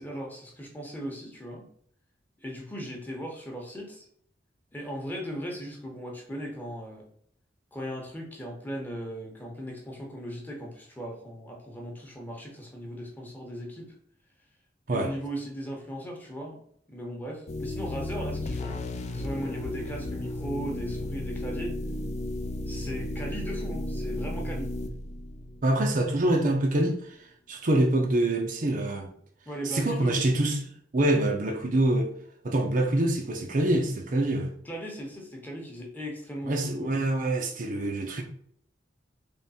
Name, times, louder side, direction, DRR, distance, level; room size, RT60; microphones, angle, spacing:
voice 1, 0.0-1.7 2.4-4.1 4.7-7.0 7.7-13.9 14.9-18.8 19.1-21.8 22.7-24.7 29.5-30.2 34.6-37.0, equal, 10° left, 0.9 m, -38 dB
sound 1, 17.5-26.2, left 1 dB, 35° left, 0.4 m, -34 dB
voice 2, 25.6-29.1 29.6-32.1 32.4-34.5 36.5-38.2, right 1 dB, 45° right, 0.6 m, -25 dB
3.6 x 3.2 x 4.2 m
head